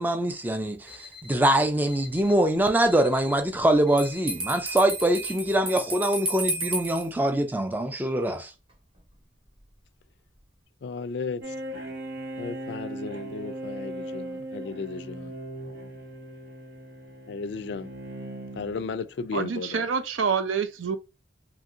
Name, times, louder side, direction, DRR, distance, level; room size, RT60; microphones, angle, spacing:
voice 1, 0.0-8.5, right 1 dB, 10° right, 0.3 m, -24 dB
Alarm, 0.6-5.6, left 5 dB, 5° left, 0.7 m, -48 dB
Bell, 4.0-7.1, right 2 dB, 30° right, 0.8 m, -32 dB
voice 2, 10.8-11.4 12.4-15.3 17.3-17.9 18.6-19.8, left 4 dB, 65° left, 0.3 m, -34 dB
sound 1, 11.4-19.0, right 1 dB, 55° right, 0.8 m, -38 dB
voice 3, 19.3-21.0, right 6 dB, 90° right, 0.5 m, -27 dB
3.0 x 2.7 x 2.4 m
head